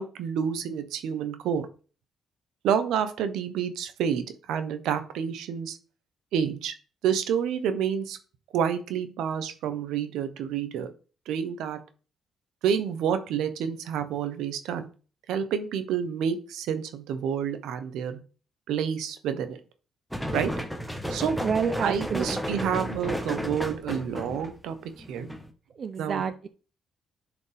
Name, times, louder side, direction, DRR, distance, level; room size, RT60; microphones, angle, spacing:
voice 1, 0.0-1.7 2.6-5.8 6.3-6.7 7.0-8.2 8.5-10.9 11.3-11.8 12.6-14.8 15.3-18.2 18.7-19.6 20.3-20.5 21.1-21.3 21.8-25.3 26.0-26.2, right 8 dB, 85° right, 9 dB, 1.0 m, -29 dB
sound 1, 20.1-25.5, equal, ahead, 1.2 m, -33 dB
voice 2, 21.4-22.8 25.7-26.5, right 6 dB, 50° right, 10 dB, 0.5 m, -29 dB
10.5 x 5.0 x 3.5 m, 0.38 s
cardioid pair, 90°, 0 cm